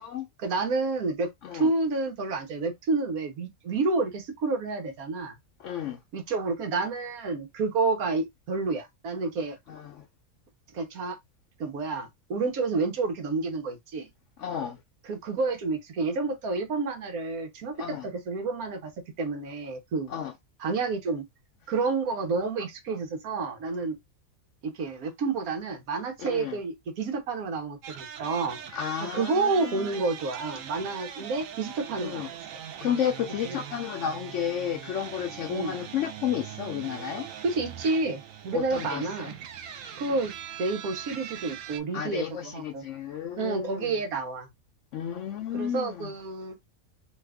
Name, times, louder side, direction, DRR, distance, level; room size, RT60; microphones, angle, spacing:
voice 1, 0.4-5.3 6.1-9.6 10.7-11.2 11.6-14.1 15.1-18.9 19.2-20.1 20.6-21.2 21.7-24.0 24.6-28.6 29.1-32.4 33.4-33.6 35.5-35.7 37.4-39.3 40.0-40.3 40.6-42.8 43.4-44.5 45.5-46.6, right 3 dB, 90° right, 1.4 m, -29 dB
voice 2, 5.6-6.0 9.7-10.0 14.4-14.8 17.8-18.1 20.1-20.3 26.2-26.6 28.7-30.0 32.0-32.3 32.8-37.3 38.5-39.3 41.9-44.0 44.9-46.1, left 9 dB, 70° left, 0.8 m, -32 dB
sound 1, 27.8-41.8, right 9 dB, 75° right, 1.0 m, -41 dB
3.1 x 2.4 x 3.4 m
omnidirectional pair, 1.5 m